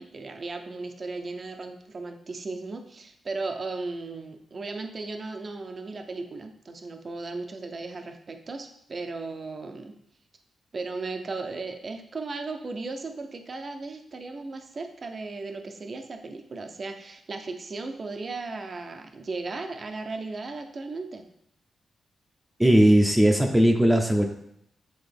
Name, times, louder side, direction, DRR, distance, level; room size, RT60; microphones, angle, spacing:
voice 1, 0.0-9.9 10.7-21.2, right 3 dB, 50° right, 5 dB, 0.7 m, -36 dB
voice 2, 22.6-24.2, right 1 dB, 10° right, 3 dB, 0.7 m, -18 dB
7.9 x 3.6 x 3.5 m, 0.76 s
cardioid pair, 70°, 0 cm